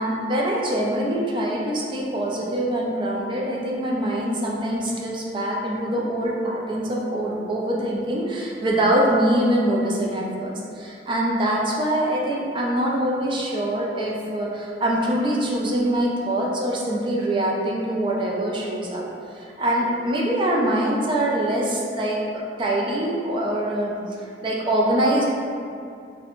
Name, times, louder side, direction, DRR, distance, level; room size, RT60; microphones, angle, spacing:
voice 1, 0.0-19.0 19.3-22.2 22.6-24.0 24.4-25.2, right 1 dB, 30° right, -3 dB, 0.4 m, -24 dB
2.4 x 2.1 x 2.9 m, 2.4 s
head